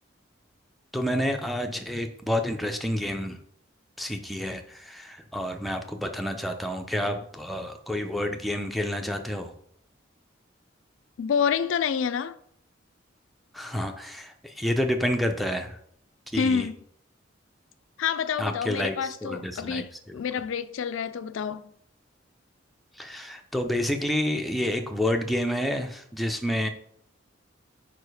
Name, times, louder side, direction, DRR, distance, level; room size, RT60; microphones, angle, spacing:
voice 1, 0.9-3.4 4.0-9.5 13.5-15.8 16.3-16.7 18.4-19.0 19.2-20.2 23.0-26.7, left 1 dB, ahead, 0.5 m, -29 dB
voice 2, 11.2-12.3 16.3-16.8 18.0-21.7, left 7 dB, 85° left, 0.4 m, -28 dB
4.8 x 4.6 x 4.8 m
head